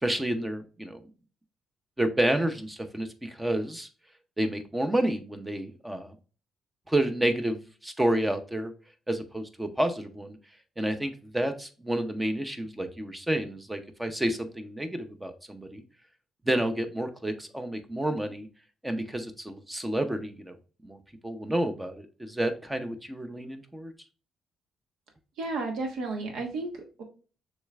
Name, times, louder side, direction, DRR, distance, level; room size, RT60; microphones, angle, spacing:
voice 1, 0.0-1.0 2.0-3.9 4.4-6.1 6.9-8.7 9.1-10.4 10.8-15.8 16.4-18.5 18.8-20.6 20.8-23.9, right 1 dB, 10° right, 8 dB, 0.6 m, -30 dB
voice 2, 25.4-27.0, right 3 dB, 80° right, 2 dB, 1.2 m, -33 dB
6.4 x 3.2 x 2.3 m, 0.36 s
cardioid pair, 120°, 0 cm